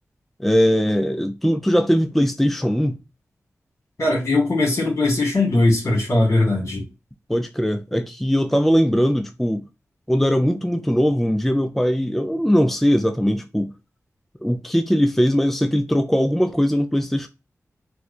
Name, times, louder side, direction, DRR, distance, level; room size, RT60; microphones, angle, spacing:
voice 1, 0.4-3.0 7.3-9.6 10.1-13.7 14.4-17.3, equal, 5° left, 0.4 m, -20 dB
voice 2, 4.0-6.8, left 2 dB, 55° left, 1.9 m, -19 dB
4.4 x 2.3 x 2.5 m
cardioid pair, 50°, 6 cm